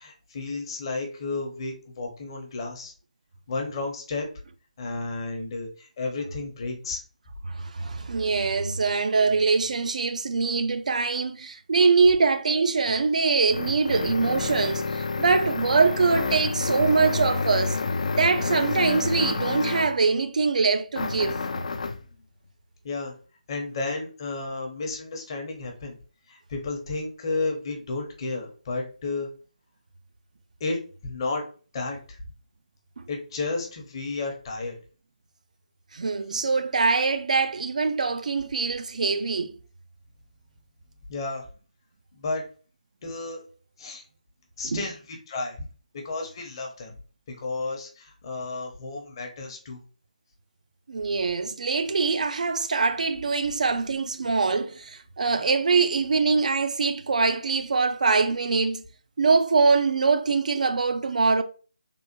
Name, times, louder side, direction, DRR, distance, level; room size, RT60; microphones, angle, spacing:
voice 1, 0.0-2.9 3.5-4.3 4.8-7.0 22.8-23.1 23.5-26.0 26.3-29.3 30.6-31.5 31.7-32.2 33.1-34.8 41.1-41.5 42.1-42.4 43.0-43.4 43.8-44.0 44.6-45.6 46.0-46.9 47.3-49.8, left 3 dB, 40° left, 0.7 m, -32 dB
voice 2, 7.5-17.8 18.2-21.4 33.0-33.1 35.9-39.6 44.6-44.8 50.9-58.8 59.2-61.4, right 4 dB, 65° right, 0.3 m, -23 dB
sound 1, 12.8-20.0 20.9-22.1, left 4 dB, 60° left, 0.3 m, -29 dB
3.4 x 2.1 x 2.9 m
figure-of-eight pair, 150°, 4 cm